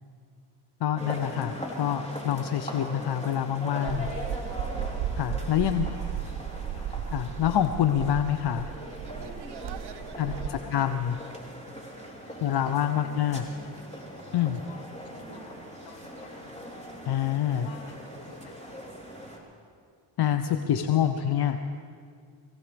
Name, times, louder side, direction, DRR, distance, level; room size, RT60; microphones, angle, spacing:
voice 1, 0.8-4.1 5.2-5.9 7.1-8.7 10.2-10.3 10.7-11.1 12.4-13.4 14.3-14.6 17.1-17.7 20.2-21.5, left 10 dB, 60° left, 9 dB, 0.7 m, -26 dB
sound 1, 1.0-19.4, equal, 15° left, 3.5 m, -41 dB
sound 2, 3.9-10.5, right 9 dB, 60° right, 0.8 m, -35 dB
voice 2, 5.6-6.5 6.7-6.9 9.8-10.9 12.2-16.7 17.5-18.6 20.4-21.4, left 4 dB, 75° left, -2 dB, 4.9 m, -49 dB
23.0 x 16.5 x 3.4 m, 2.2 s
cardioid pair, 70°, 46 cm